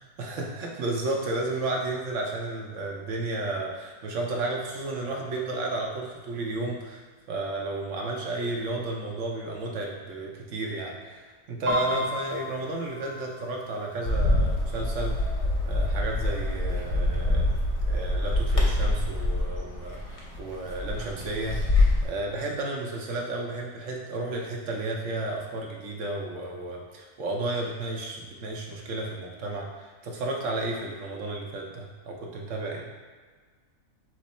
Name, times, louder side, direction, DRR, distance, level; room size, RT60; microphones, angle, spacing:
voice 1, 0.0-7.0 7.3-17.6 17.8-32.9, right 2 dB, 65° right, -1 dB, 1.1 m, -32 dB
Piano, 11.7-15.3 15.7-16.1 16.4-17.0 17.6-17.7 18.0-19.0 19.4-19.5, left 1 dB, 90° right, 1.3 m, -35 dB
Bird, 14.1-22.0, left 2 dB, 35° left, 0.5 m, -25 dB
6.1 x 2.1 x 4.1 m, 1.5 s
omnidirectional pair, 1.5 m